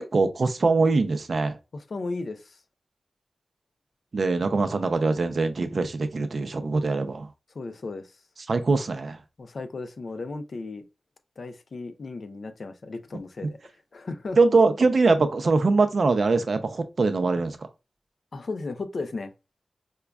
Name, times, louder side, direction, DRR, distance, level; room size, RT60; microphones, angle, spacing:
voice 1, 0.0-1.6 4.1-7.3 8.5-9.2 14.4-17.6, right 3 dB, 60° right, 0.5 m, -22 dB
voice 2, 1.7-2.6 7.5-8.2 9.4-10.8 11.4-13.6 13.9-14.4 18.3-19.3, left 3 dB, 65° left, 0.4 m, -35 dB
4.9 x 2.3 x 2.3 m
wide cardioid pair, 115°, 0 cm